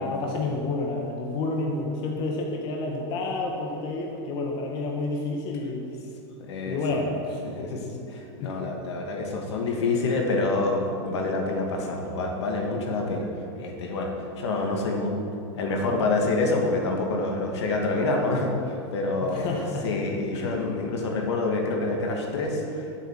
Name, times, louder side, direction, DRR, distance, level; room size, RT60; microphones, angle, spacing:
voice 1, 0.0-6.1 6.6-7.4 8.4-8.6 19.2-19.9 20.3-20.6, left 2 dB, 30° left, 0 dB, 1.5 m, -30 dB
voice 2, 6.5-7.1 7.4-13.3 13.5-15.1 15.5-22.9, left 2 dB, 75° left, 1 dB, 2.4 m, -27 dB
10.5 x 8.1 x 7.8 m, 2.5 s
supercardioid pair, 165°, 14 cm